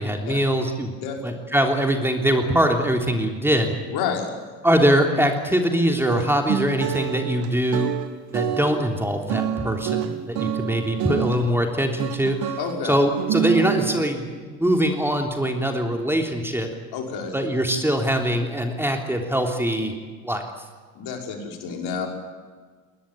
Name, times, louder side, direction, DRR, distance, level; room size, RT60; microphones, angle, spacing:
voice 1, 0.0-1.0 1.2-3.7 4.6-7.9 8.3-12.6 12.8-16.7 17.3-19.9 20.2-20.4, equal, 5° right, 3 dB, 3.4 m, -22 dB
voice 2, 1.0-1.3 3.9-4.3 12.6-13.0 16.9-17.4 21.0-22.1, left 6 dB, 55° left, 2 dB, 5.8 m, -29 dB
sound 1, 6.0-11.4 12.0-12.8 13.1-14.0, right 10 dB, 50° right, 2.5 m, -27 dB
21.0 x 20.0 x 9.2 m, 1.5 s
hypercardioid pair, 75°, 45 cm